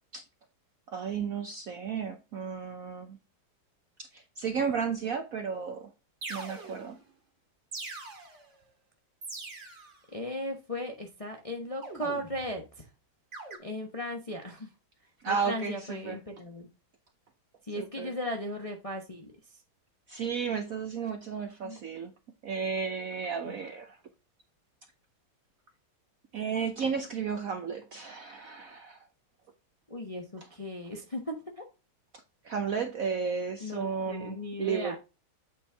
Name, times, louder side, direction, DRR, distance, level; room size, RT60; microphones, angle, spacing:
voice 1, 0.9-3.2 4.0-5.9 6.3-7.0 15.2-16.2 17.8-18.1 20.1-22.1 22.4-24.0 26.3-29.0 32.4-35.0, right 6 dB, 65° right, 0.9 m, -33 dB
sound 1, 5.5-5.6 6.2-7.0 7.7-8.5 9.2-10.0 11.8-12.6 13.3-13.6, right 3 dB, 35° right, 1.9 m, -42 dB
voice 2, 10.1-12.8 13.6-14.7 15.3-16.7 17.6-19.3 21.6-21.8 23.4-23.6 29.9-31.7 33.6-35.0, left 1 dB, 25° left, 0.7 m, -37 dB
8.2 x 4.3 x 3.4 m
omnidirectional pair, 2.2 m